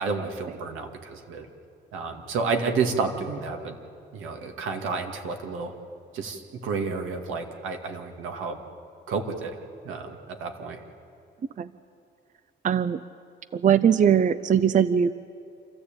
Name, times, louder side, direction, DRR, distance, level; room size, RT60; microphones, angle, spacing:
voice 1, 0.0-1.5 1.9-3.8 4.1-5.7 6.1-8.6 9.1-9.6 9.8-10.8, right 4 dB, 85° right, 4 dB, 2.3 m, -30 dB
voice 2, 12.6-13.0 13.5-15.1, right 8 dB, 40° right, 15 dB, 0.6 m, -20 dB
27.5 x 14.0 x 8.8 m, 2.5 s
cardioid pair, 90°, 20 cm